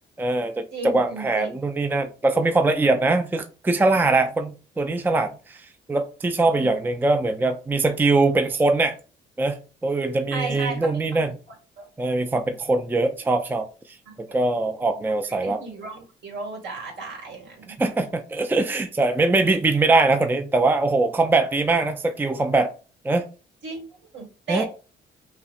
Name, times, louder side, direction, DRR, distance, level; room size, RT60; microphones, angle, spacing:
voice 1, 0.2-5.6 5.9-9.0 9.4-9.6 9.8-11.3 12.0-13.7 14.3-15.6 17.8-22.7 23.0-23.2 24.5-24.6, right 3 dB, 10° right, 0.4 m, -22 dB
voice 2, 0.7-1.6 6.5-6.7 10.3-11.2 11.8-11.9 14.1-14.5 15.3-17.8 23.6-24.6, right 3 dB, 70° right, 1.9 m, -35 dB
5.6 x 2.1 x 2.5 m
cardioid pair, 90°, 20 cm